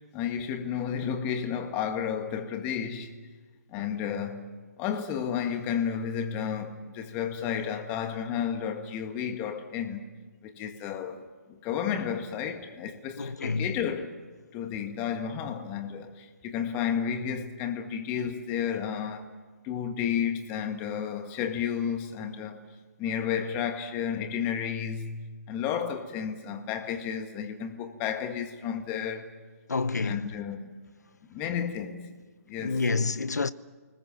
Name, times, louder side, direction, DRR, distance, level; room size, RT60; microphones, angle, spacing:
voice 1, 0.1-3.1 3.7-10.1 10.4-14.2 14.5-19.3 19.6-22.6 23.0-29.3 30.0-30.7 31.3-32.1 32.5-33.2, left 8 dB, 20° left, 1.8 m, -32 dB
voice 2, 13.2-13.7 29.7-30.3 32.6-33.5, left 4 dB, 85° left, 1.0 m, -28 dB
29.0 x 20.0 x 7.6 m
hypercardioid pair, 155°, 9 cm